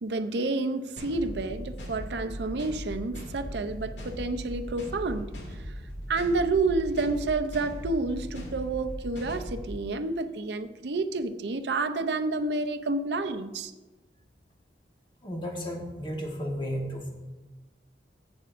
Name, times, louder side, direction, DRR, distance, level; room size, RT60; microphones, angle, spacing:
voice 1, 0.0-5.3 6.1-13.7, right 3 dB, 75° right, 9 dB, 0.5 m, -29 dB
sound 1, 1.0-9.7, equal, 90° left, 1.8 m, -39 dB
voice 2, 15.2-17.1, equal, 25° left, 1 dB, 1.3 m, -33 dB
14.0 x 7.9 x 2.5 m, 1.2 s
head